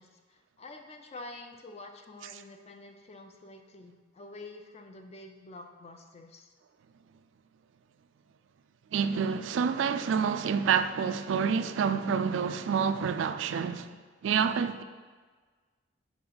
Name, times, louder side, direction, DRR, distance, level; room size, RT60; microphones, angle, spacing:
voice 1, 0.0-6.5, left 2 dB, 35° left, 0.5 m, -48 dB
voice 2, 8.9-13.9 14.2-14.8, right 6 dB, 85° right, 0.3 m, -28 dB
6.0 x 4.2 x 3.9 m
head